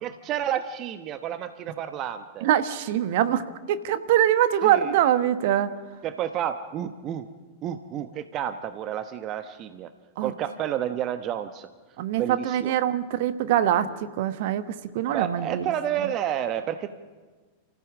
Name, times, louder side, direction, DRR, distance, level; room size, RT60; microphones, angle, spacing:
voice 1, 0.0-2.5 4.6-4.9 6.0-7.3 7.6-9.9 10.2-11.7 12.2-12.7 15.1-16.9, right 10 dB, 35° right, 10 dB, 1.0 m, -30 dB
voice 2, 2.4-5.7 10.2-10.3 12.0-15.7, right 11 dB, 50° right, 11 dB, 1.3 m, -23 dB
29.0 x 15.0 x 7.4 m, 1.4 s
figure-of-eight pair, 90°, 0 cm